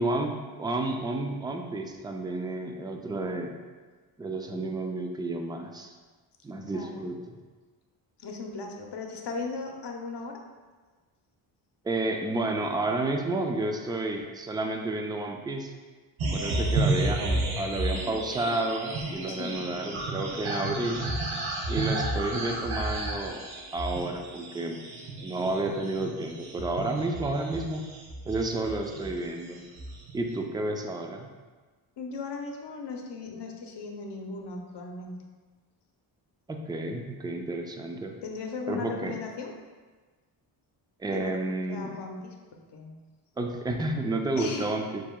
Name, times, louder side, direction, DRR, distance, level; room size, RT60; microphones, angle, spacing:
voice 1, 0.0-3.5 4.2-5.9 6.4-7.4 11.8-15.7 16.3-21.0 21.7-24.8 25.2-27.9 28.3-29.6 30.1-31.3 36.5-38.1 38.7-39.2 41.0-41.9 43.4-45.0, right 2 dB, 10° right, 3 dB, 0.4 m, -31 dB
voice 2, 6.7-7.1 8.2-10.4 16.5-16.9 19.3-19.8 32.0-35.2 38.2-39.5 41.1-41.3 41.7-42.3 42.7-43.0 44.4-44.7, left 4 dB, 55° left, 2 dB, 0.8 m, -37 dB
sound 1, 16.2-29.3 29.6-30.3, right 2 dB, 70° right, 1.0 m, -32 dB
6.7 x 3.0 x 2.3 m, 1.4 s
cardioid pair, 60°, 49 cm